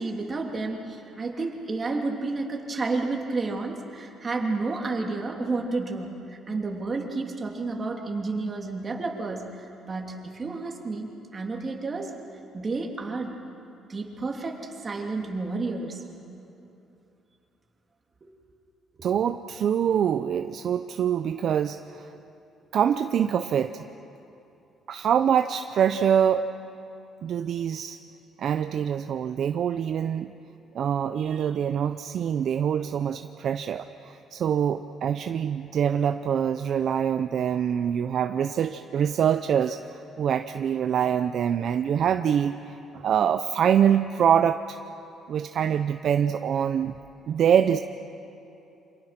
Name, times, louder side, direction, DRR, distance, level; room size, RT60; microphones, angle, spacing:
voice 1, 0.0-11.1 11.3-12.1 12.5-13.4 13.9-16.0 18.2-18.3 19.0-19.1, right 3 dB, 30° right, 1 dB, 3.0 m, -31 dB
voice 2, 19.0-22.1 22.7-23.8 24.9-26.5 27.2-28.0 28.4-30.3 30.7-39.8 40.2-44.8 45.3-46.9 47.3-47.8, right 8 dB, 55° right, 8 dB, 0.6 m, -24 dB
28.5 x 26.5 x 6.0 m, 2.8 s
cardioid pair, 135°, 0 cm